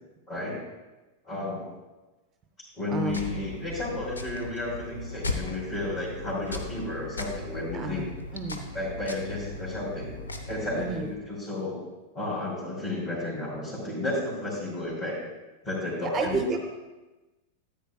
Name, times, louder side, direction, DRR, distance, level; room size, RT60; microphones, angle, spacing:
voice 1, 0.3-0.6 1.2-1.7 2.6-8.0 8.7-10.1 10.5-11.8 12.1-15.2 15.6-16.4, left 2 dB, 30° left, -9 dB, 3.1 m, -32 dB
voice 2, 2.9-3.2 7.7-8.6 10.7-11.1 16.0-16.6, right 4 dB, 25° right, 4 dB, 0.7 m, -31 dB
sound 1, 3.1-11.1, left 2 dB, 75° left, 0.9 m, -37 dB
13.5 x 9.0 x 2.3 m, 1.1 s
figure-of-eight pair, 90°, 0 cm